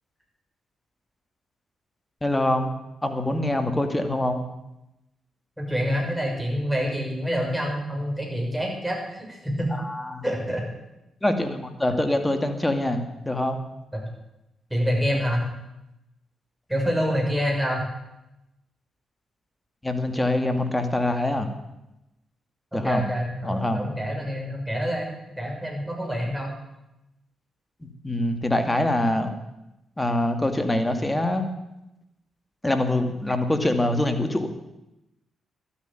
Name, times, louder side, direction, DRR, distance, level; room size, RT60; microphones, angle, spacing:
voice 1, 2.2-2.7 3.0-4.4 9.7-10.2 11.2-13.6 19.8-21.5 22.7-23.0 23.4-23.8 27.8-29.3 30.0-31.5 32.6-34.5, left 1 dB, 15° left, 7 dB, 2.4 m, -24 dB
voice 2, 5.6-9.7 10.2-10.6 13.9-14.0 14.7-15.5 16.7-17.9 22.7-26.6, equal, 5° right, -1 dB, 6.6 m, -27 dB
12.5 x 8.8 x 9.3 m, 0.92 s
supercardioid pair, 50°, 0 cm